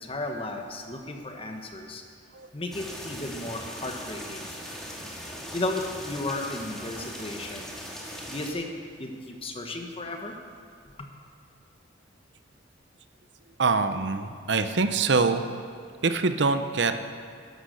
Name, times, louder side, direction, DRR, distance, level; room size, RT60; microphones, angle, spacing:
voice 1, 0.0-2.0 2.5-4.4 5.5-7.7 8.3-8.7 9.0-10.3, left 2 dB, 30° left, 3 dB, 1.3 m, -34 dB
sound 1, 2.7-8.5, equal, 5° left, 1.9 m, -39 dB
voice 2, 13.6-15.4 16.0-17.0, right 4 dB, 65° right, 9 dB, 0.7 m, -24 dB
12.0 x 12.0 x 6.6 m, 2.2 s
head